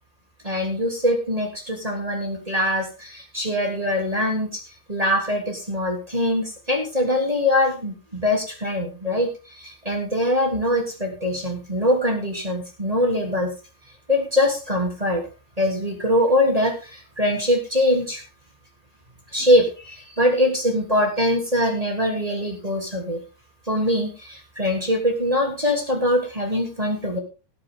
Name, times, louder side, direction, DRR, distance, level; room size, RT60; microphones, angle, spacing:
voice 1, 0.4-4.6 4.9-9.3 9.6-13.5 14.1-15.2 15.6-18.2 19.3-23.2 23.7-27.2, left 1 dB, 10° right, 1 dB, 2.2 m, -23 dB
17.5 x 9.4 x 3.7 m, 0.32 s
omnidirectional pair, 4.9 m